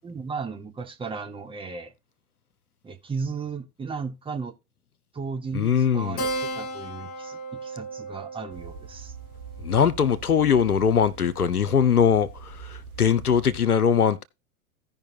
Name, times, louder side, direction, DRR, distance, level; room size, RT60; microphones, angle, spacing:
voice 1, 0.0-1.9 2.8-4.5 5.1-9.1, right 5 dB, 10° right, 1.0 m, -35 dB
voice 2, 5.5-6.2 9.6-14.2, left 7 dB, 80° left, 0.8 m, -21 dB
Keyboard (musical), 6.2-11.1, right 1 dB, 25° left, 1.8 m, -36 dB
sound 1, 8.5-13.6, right 5 dB, 70° right, 2.0 m, -43 dB
16.0 x 5.4 x 2.7 m
figure-of-eight pair, 90°, 44 cm